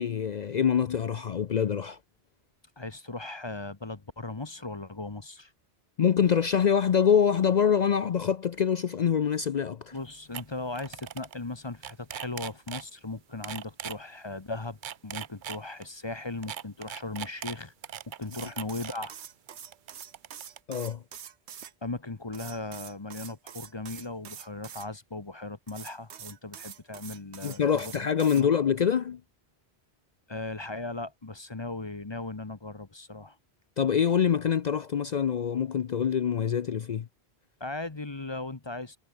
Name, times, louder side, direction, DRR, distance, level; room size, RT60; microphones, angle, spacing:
voice 1, 0.0-2.0 6.0-9.9 20.7-21.0 27.4-29.2 33.8-37.1, left 7 dB, 50° left, 0.6 m, -25 dB
voice 2, 2.8-5.5 9.9-14.8 15.0-17.7 18.1-19.1 21.8-28.1 28.4-28.5 30.3-33.4 37.6-39.0, left 2 dB, 25° left, 1.0 m, -37 dB
sound 1, 10.0-10.1 10.3-10.4 10.7-11.4 11.7-12.8 13.4-14.0 14.6-15.9 16.4-19.1 19.7-20.6, right 9 dB, 55° right, 0.7 m, -39 dB
sound 2, 18.2-21.7 22.3-24.9 25.7-28.4, right 8 dB, 85° right, 1.2 m, -45 dB
omnidirectional pair, 1.1 m